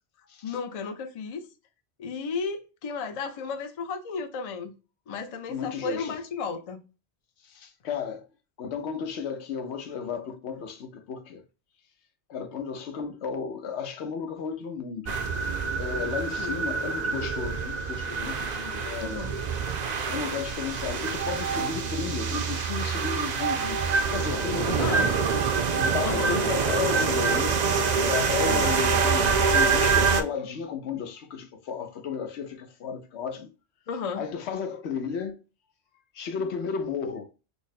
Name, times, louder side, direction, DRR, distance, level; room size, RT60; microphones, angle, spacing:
voice 1, 0.4-1.5 2.0-4.7 5.1-6.8 16.4-16.6 19.0-19.4 24.8-25.1 26.0-26.4 28.4-28.8 33.9-34.3, left 5 dB, 45° left, 0.5 m, -33 dB
voice 2, 5.5-6.2 7.5-8.2 8.6-11.4 12.3-15.2 15.8-19.3 20.0-23.8 24.1-25.2 25.7-27.6 28.0-33.5 34.1-35.4 36.1-37.3, left 6 dB, 85° left, 1.0 m, -33 dB
sound 1, 15.1-30.2, right 5 dB, 50° right, 0.5 m, -26 dB
3.5 x 2.0 x 4.0 m
omnidirectional pair, 1.1 m